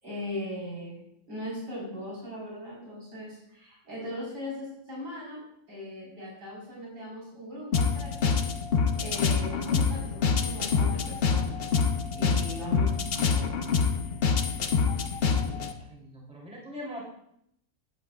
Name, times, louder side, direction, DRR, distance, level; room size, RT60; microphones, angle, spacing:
voice 1, 0.0-8.3 9.0-11.7 12.1-13.6, left 1 dB, 75° right, -6 dB, 5.0 m, -39 dB
sound 1, 7.7-15.7, left 5 dB, 50° left, 0.8 m, -26 dB
voice 2, 14.8-17.0, equal, 5° right, -5 dB, 3.1 m, -43 dB
15.5 x 11.0 x 2.4 m, 0.74 s
omnidirectional pair, 1.8 m